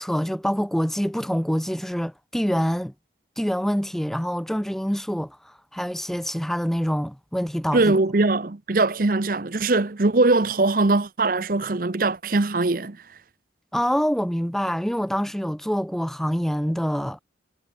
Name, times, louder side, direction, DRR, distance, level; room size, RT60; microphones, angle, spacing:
voice 1, 0.0-2.9 3.4-8.0 13.7-17.2, equal, ahead, 0.8 m, -26 dB
voice 2, 7.7-13.0, right 2 dB, 50° right, 0.8 m, -21 dB
head